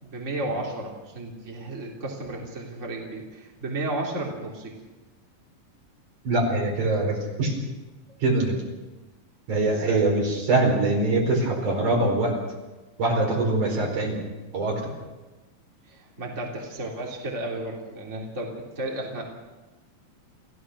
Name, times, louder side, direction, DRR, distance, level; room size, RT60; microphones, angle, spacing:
voice 1, 0.0-4.8 9.7-10.0 15.9-19.2, right 2 dB, 20° right, -2 dB, 3.5 m, -33 dB
voice 2, 6.2-7.5 8.2-8.5 9.5-12.4 13.0-14.2 14.5-14.8, right 2 dB, 60° right, 1 dB, 5.9 m, -23 dB
28.5 x 16.0 x 6.4 m, 1.1 s
omnidirectional pair, 4.0 m